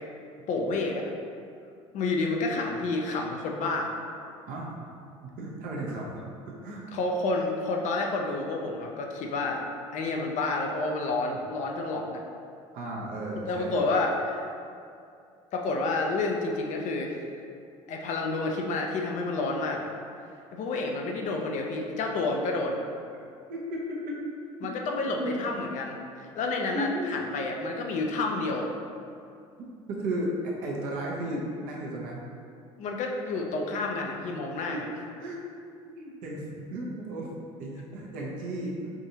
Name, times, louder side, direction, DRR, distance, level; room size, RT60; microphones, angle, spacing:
voice 1, 0.5-1.1 1.9-3.9 6.9-9.6 9.9-12.2 13.5-14.5 15.5-17.2 17.9-19.9 20.5-22.8 24.6-28.7 32.8-34.8, left 3 dB, 50° left, 1 dB, 0.6 m, -29 dB
voice 2, 4.5-4.9 5.2-6.8 12.7-13.8 23.5-24.2 24.6-24.7 25.2-25.3 26.7-27.2 29.9-32.2 34.7-34.8 35.2-35.4 35.8-38.9, right 1 dB, 60° right, -3 dB, 0.9 m, -34 dB
4.9 x 2.6 x 2.8 m, 2.4 s
hypercardioid pair, 75°, 16 cm